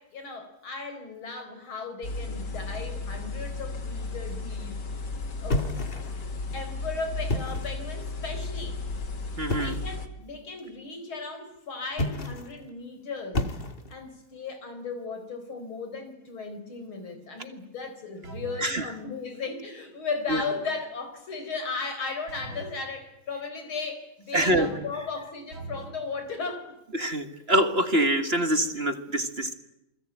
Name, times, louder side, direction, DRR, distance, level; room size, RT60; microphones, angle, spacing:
voice 1, 0.0-4.8 5.4-5.7 6.5-8.9 9.5-13.5 13.9-26.7, left 4 dB, 85° left, 7 dB, 5.1 m, -36 dB
sound 1, 2.0-10.1, left 3 dB, 55° left, 2.7 m, -34 dB
sound 2, 5.5-6.3 7.2-7.9 9.5-9.9 11.9-12.6 13.3-14.1, left 2 dB, 30° left, 1.7 m, -30 dB
voice 2, 9.4-9.7 18.6-18.8 20.3-20.4 24.3-24.7 27.0-29.5, right 1 dB, 30° right, 8 dB, 1.9 m, -25 dB
sound 3, 18.2-18.8 22.3-22.8 24.4-25.0 25.5-26.0, right 3 dB, 80° right, 4.8 m, -41 dB
29.0 x 21.0 x 9.1 m, 0.90 s
omnidirectional pair, 2.2 m